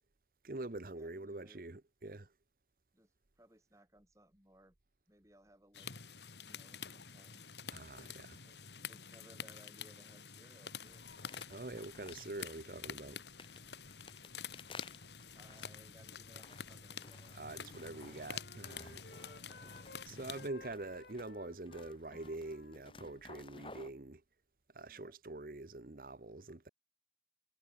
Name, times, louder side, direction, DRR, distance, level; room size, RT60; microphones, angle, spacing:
voice 1, 0.4-2.3 7.7-8.4 11.5-13.2 17.3-19.0 20.1-24.2 24.7-26.7, right 2 dB, 50° right, 1.0 m, -45 dB
voice 2, 1.0-1.6 2.9-4.7 5.1-6.0 6.4-7.4 8.4-11.0 15.3-17.6 19.0-20.0 24.9-25.1 25.8-25.9, right 1 dB, 15° right, 6.1 m, -64 dB
sound 1, 5.7-20.5, left 6 dB, 80° left, 3.6 m, -48 dB
sound 2, 10.8-23.9, left 3 dB, 30° left, 2.9 m, -57 dB
Wind instrument woodwind instrument, 17.4-20.1 20.3-24.0, left 3 dB, 65° left, 1.8 m, -58 dB
head